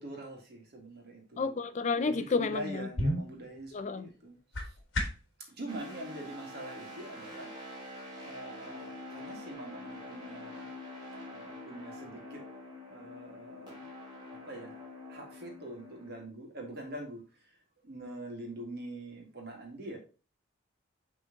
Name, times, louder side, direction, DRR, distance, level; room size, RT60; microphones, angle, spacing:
voice 1, 0.0-1.6 1.9-4.7 5.5-7.5 8.2-10.7 11.3-12.4 12.9-13.8 14.4-14.8 15.1-17.2 17.8-20.0, right 1 dB, 50° right, 2.0 m, -44 dB
voice 2, 1.4-2.9 3.7-4.1, left 4 dB, 35° left, 0.4 m, -31 dB
sound 1, 2.9-5.4, left 1 dB, 60° left, 1.5 m, -35 dB
sound 2, 5.7-16.2, left 1 dB, 25° right, 2.1 m, -46 dB
7.0 x 3.8 x 3.8 m
head